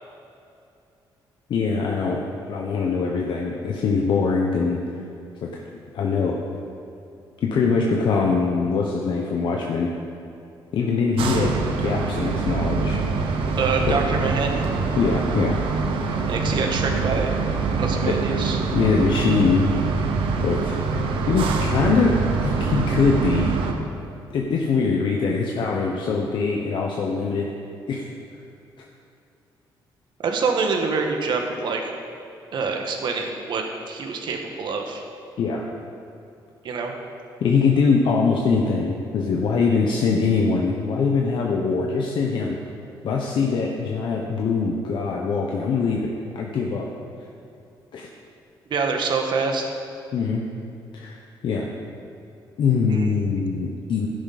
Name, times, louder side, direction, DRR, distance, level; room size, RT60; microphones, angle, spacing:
voice 1, 1.5-4.8 5.4-5.6 5.9-6.4 7.4-9.9 10.7-13.0 13.9-14.0 15.0-15.6 18.0-18.1 18.7-19.6 20.4-20.8 21.3-23.5 24.3-27.5 27.9-28.1 35.4-35.6 37.4-42.6 43.0-46.8 47.9-48.1 50.1-50.4 50.9-51.2 51.4-51.7 52.6-54.1, left 4 dB, 65° left, -1 dB, 1.1 m, -22 dB
sound 1, 11.2-23.7, right 4 dB, 85° right, 1.2 m, -24 dB
voice 2, 13.6-14.7 16.3-17.3 17.8-18.6 30.2-31.9 32.5-35.0 36.6-36.9 48.7-49.7 52.9-53.1, right 4 dB, 60° right, 3 dB, 1.5 m, -25 dB
12.5 x 10.5 x 4.2 m, 2.6 s
cardioid pair, 110°, 9 cm